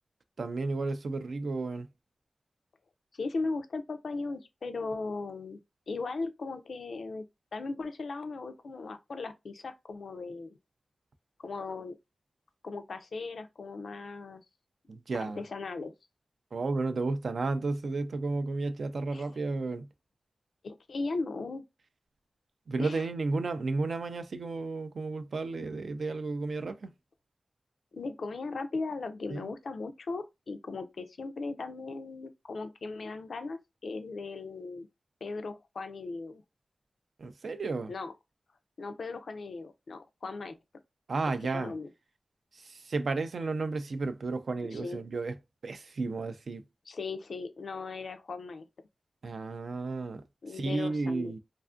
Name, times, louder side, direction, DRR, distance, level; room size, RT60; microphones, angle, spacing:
voice 1, 0.4-1.9 14.9-15.4 16.5-19.9 22.7-26.9 29.3-29.5 37.2-37.9 41.1-41.7 42.5-45.3 45.6-46.6 49.2-50.2 50.5-51.4, right 3 dB, 80° right, 0.3 m, -33 dB
voice 2, 3.1-5.6 5.9-7.2 7.5-10.6 11.4-11.9 12.6-14.4 15.2-15.9 19.1-19.3 20.6-21.6 22.8-23.1 27.9-34.9 35.2-36.4 37.9-38.1 38.8-40.6 41.4-41.9 44.7-45.0 46.9-48.7 50.4-51.3, left 3 dB, 85° left, 0.3 m, -37 dB
2.4 x 2.3 x 2.4 m
cardioid pair, 50°, 0 cm